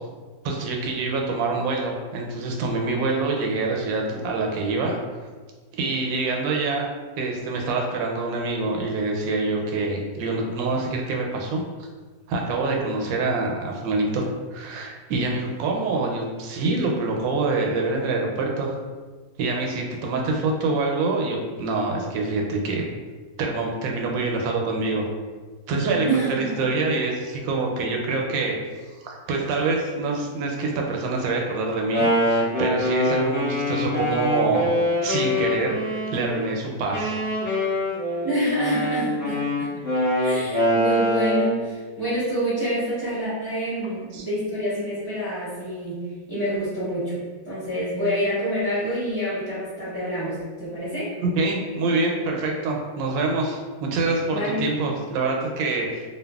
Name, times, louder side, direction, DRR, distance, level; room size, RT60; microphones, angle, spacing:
voice 1, 0.4-4.9 5.8-6.9 7.2-11.6 12.3-18.8 19.4-22.8 23.4-25.1 25.7-28.6 29.0-34.7 35.0-37.7 40.2-40.3 44.1-44.2 51.2-56.0, right 3 dB, 85° right, 0 dB, 1.2 m, -26 dB
voice 2, 26.0-26.7 38.2-39.7 40.2-46.0 46.3-51.1 54.3-54.6, equal, 20° right, -12 dB, 0.6 m, -27 dB
Wind instrument woodwind instrument, 31.7-36.4 36.9-41.6, left 1 dB, 15° left, 0.7 m, -24 dB
2.7 x 2.6 x 2.2 m, 1.4 s
omnidirectional pair, 2.0 m